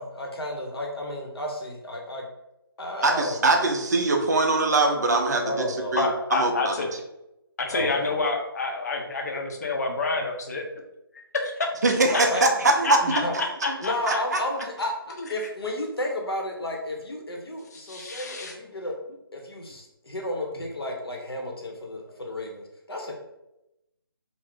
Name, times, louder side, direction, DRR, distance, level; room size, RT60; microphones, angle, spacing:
voice 1, 0.0-2.2 2.8-3.6 5.4-6.0 7.7-8.1 12.1-12.4 13.0-13.3 13.8-19.0 19.3-23.1, left 1 dB, 80° left, 1 dB, 0.8 m, -32 dB
voice 2, 3.0-5.6 5.9-6.7 11.8-13.0 14.1-14.4, right 2 dB, 45° right, 4 dB, 0.4 m, -22 dB
voice 3, 6.0-6.9 7.6-10.6 11.3-11.7 12.1-12.2 12.8-13.2 13.6-14.2 15.2-15.5 17.7-18.5, left 3 dB, 45° left, 2 dB, 0.5 m, -28 dB
2.4 x 2.0 x 3.6 m, 0.89 s
figure-of-eight pair, 155°, 13 cm